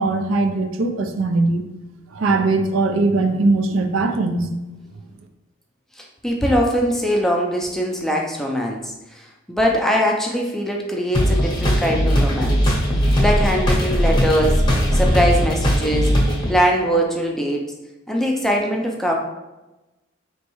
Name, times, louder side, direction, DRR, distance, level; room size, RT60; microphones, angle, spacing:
voice 1, 0.0-1.6 2.1-4.5, right 3 dB, 80° right, 6 dB, 0.5 m, -20 dB
voice 2, 6.0-12.6 12.9-14.6 14.9-16.1 16.5-17.7 18.1-19.1, equal, ahead, 0 dB, 0.4 m, -22 dB
sound 1, 11.1-16.5, equal, 20° left, 0.8 m, -18 dB
4.5 x 3.0 x 3.0 m, 1.0 s
head